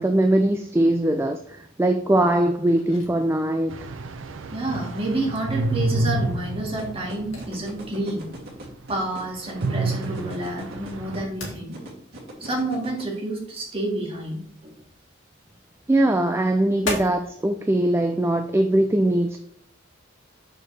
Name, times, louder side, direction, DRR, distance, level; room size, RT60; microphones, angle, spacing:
voice 1, 0.0-3.7 15.9-19.4, right 1 dB, 10° right, 6 dB, 0.3 m, -21 dB
sound 1, 2.4-17.4, left 2 dB, 80° left, 2.1 m, -40 dB
sound 2, 3.7-8.0 8.4-8.5 9.6-11.3, right 2 dB, 70° right, 0.6 m, -29 dB
voice 2, 4.5-8.2 8.9-11.8 12.4-14.7, right 2 dB, 30° right, -1 dB, 1.9 m, -29 dB
sound 3, 6.8-13.0, right 1 dB, 50° right, 2.6 m, -40 dB
6.5 x 6.5 x 3.3 m, 0.67 s
head